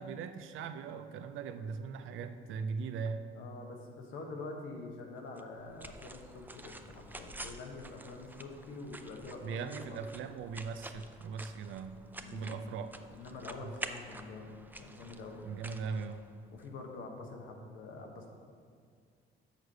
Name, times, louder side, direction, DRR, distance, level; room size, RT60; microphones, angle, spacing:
voice 1, 0.0-3.3 9.4-12.0 12.3-12.9 13.6-13.7 15.4-16.2, right 5 dB, 85° right, 9 dB, 0.5 m, -39 dB
voice 2, 3.3-10.1 12.2-12.8 13.1-15.5 16.5-18.3, left 3 dB, 90° left, 2 dB, 1.1 m, -46 dB
sound 1, 5.4-16.7, right 2 dB, 10° right, 0.4 m, -49 dB
6.6 x 4.8 x 6.6 m, 2.1 s
cardioid pair, 90°, 20 cm